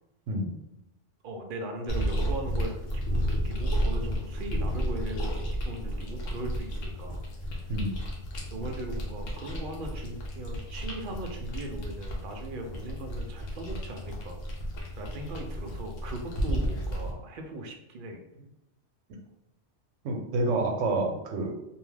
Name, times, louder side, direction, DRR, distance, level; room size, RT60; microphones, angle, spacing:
voice 1, 1.2-7.2 8.5-14.4 15.0-18.2, right 2 dB, 60° right, 3 dB, 0.6 m, -39 dB
sound 1, 1.9-17.1, equal, 80° left, 1.1 m, -32 dB
voice 2, 20.0-21.5, right 2 dB, 85° right, 1 dB, 0.9 m, -28 dB
2.7 x 2.2 x 3.2 m, 0.88 s
omnidirectional pair, 1.3 m